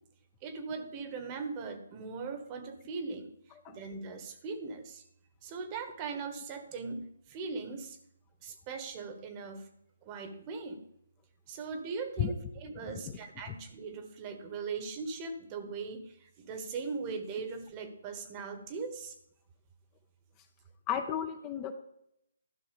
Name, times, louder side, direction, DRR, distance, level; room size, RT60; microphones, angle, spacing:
voice 1, 0.4-3.3 3.7-5.0 5.4-8.0 8.4-9.7 10.0-10.8 11.5-19.1, right 4 dB, 30° right, 8 dB, 1.2 m, -39 dB
voice 2, 12.8-13.2 13.5-13.6 20.9-21.7, left 9 dB, 25° left, 7 dB, 0.7 m, -33 dB
12.0 x 5.9 x 5.0 m, 0.76 s
hypercardioid pair, 145°, 0 cm